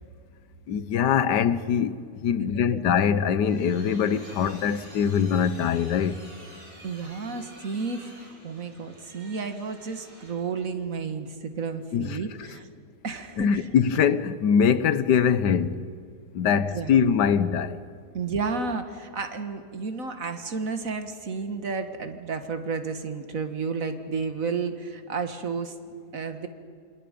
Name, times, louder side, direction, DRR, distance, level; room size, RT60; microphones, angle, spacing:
voice 1, 0.7-6.2 11.9-12.2 13.4-15.8 16.3-17.8, left 7 dB, 85° left, 1.5 m, -23 dB
voice 2, 2.3-2.8 6.8-12.7 13.0-13.7 16.7-16.9 18.1-25.7 26.1-26.5, right 4 dB, 55° right, 1.9 m, -32 dB
sound 1, 3.0-10.6, right 1 dB, 75° right, 6.4 m, -49 dB
27.5 x 27.0 x 5.2 m
omnidirectional pair, 1.8 m